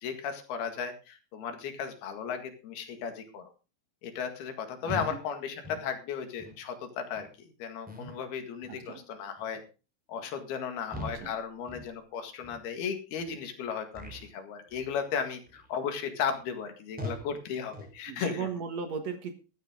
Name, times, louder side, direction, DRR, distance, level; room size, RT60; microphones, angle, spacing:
voice 1, 0.0-3.5 4.0-7.3 7.6-9.6 10.1-18.5, left 7 dB, 90° left, 6 dB, 3.9 m, -35 dB
voice 2, 4.8-5.2 8.7-9.0 10.9-11.3 18.1-19.3, right 5 dB, 55° right, 7 dB, 2.2 m, -37 dB
sound 1, 4.9-5.2 5.6-5.9 6.4-6.6 7.1-7.3 7.9-8.2 8.6-8.9 9.4-9.6 10.1-10.3 10.9-11.3 11.7-12.0 12.4-12.6 13.2-13.3 13.9-14.3 14.7-15.0 15.5-15.7 16.2-16.3 17.0-17.3 17.7-18.0, left 1 dB, ahead, 3.7 m, -42 dB
14.5 x 12.5 x 3.7 m, 0.32 s
omnidirectional pair, 4.3 m